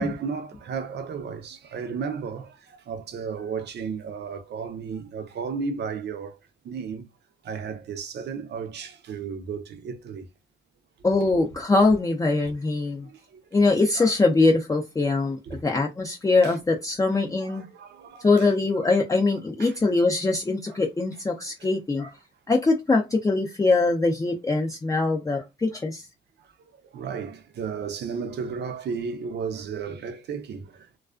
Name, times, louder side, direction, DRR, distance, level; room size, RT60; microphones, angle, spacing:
voice 1, 0.0-6.4 6.6-7.0 7.4-10.3 13.0-13.4 15.5-15.6 16.4-16.5 17.4-18.5 19.6-19.7 21.6-21.7 26.9-31.0, right 5 dB, 60° right, 0.6 m, -33 dB
voice 2, 11.0-13.1 13.5-17.7 18.2-22.2 22.5-26.1, left 3 dB, 15° left, 0.5 m, -22 dB
2.3 x 2.2 x 2.4 m
cardioid pair, 90°, 20 cm